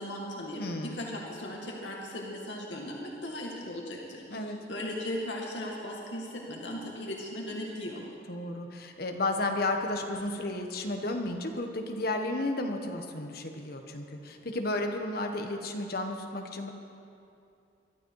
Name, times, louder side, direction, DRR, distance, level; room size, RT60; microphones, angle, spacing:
voice 1, 0.0-8.0, left 1 dB, 90° left, -2 dB, 2.1 m, -37 dB
voice 2, 0.6-1.0 4.3-4.6 8.3-16.7, left 2 dB, 60° left, 4 dB, 1.5 m, -33 dB
22.5 x 12.5 x 4.9 m, 2.6 s
head